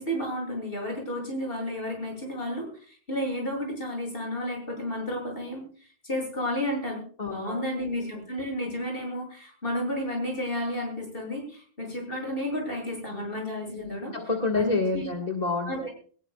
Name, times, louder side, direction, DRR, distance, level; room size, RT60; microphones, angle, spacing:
voice 1, 0.0-14.1 14.5-15.1 15.7-15.9, left 1 dB, 60° left, 0 dB, 8.2 m, -32 dB
voice 2, 7.2-7.9 13.7-15.9, left 3 dB, 40° left, 1 dB, 2.0 m, -29 dB
21.5 x 19.5 x 2.4 m, 0.44 s
omnidirectional pair, 1.1 m